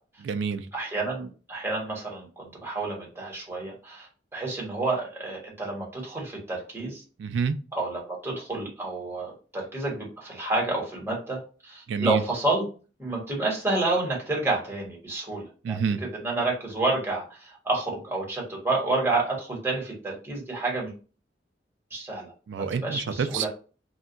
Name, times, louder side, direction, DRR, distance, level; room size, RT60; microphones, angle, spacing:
voice 1, 0.2-0.7 7.2-7.6 11.9-12.2 15.6-16.0 22.5-23.5, right 6 dB, 85° right, 10 dB, 0.3 m, -28 dB
voice 2, 0.7-7.0 7.7-12.6 13.0-15.8 16.2-20.9 21.9-22.3 22.6-23.5, right 2 dB, 15° right, -2 dB, 1.1 m, -29 dB
2.2 x 2.2 x 3.8 m, 0.35 s
head